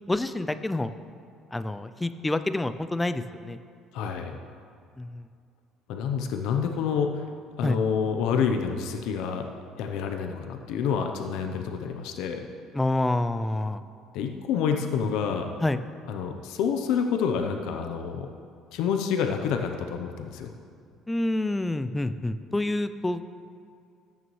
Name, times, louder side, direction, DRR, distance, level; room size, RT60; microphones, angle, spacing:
voice 1, 0.1-0.9 1.5-3.6 5.0-5.3 7.6-7.8 12.7-13.8 15.6-15.8 21.1-23.3, left 2 dB, 10° left, 11 dB, 0.3 m, -27 dB
voice 2, 3.9-4.4 5.9-7.2 7.6-9.5 9.8-12.5 14.1-15.5 16.1-18.3 18.7-20.5, left 6 dB, 70° left, 4 dB, 0.7 m, -28 dB
14.0 x 9.1 x 3.1 m, 2.4 s
cardioid pair, 165°, 0 cm